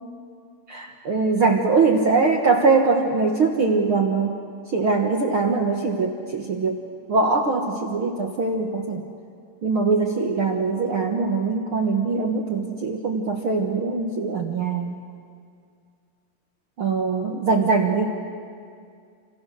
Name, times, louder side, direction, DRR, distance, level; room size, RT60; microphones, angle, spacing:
voice 1, 0.7-4.3 4.7-6.8 7.1-9.0 9.6-14.9 16.8-18.1, right 4 dB, 75° right, 2 dB, 1.2 m, -22 dB
28.0 x 28.0 x 6.5 m, 2.3 s
omnidirectional pair, 4.6 m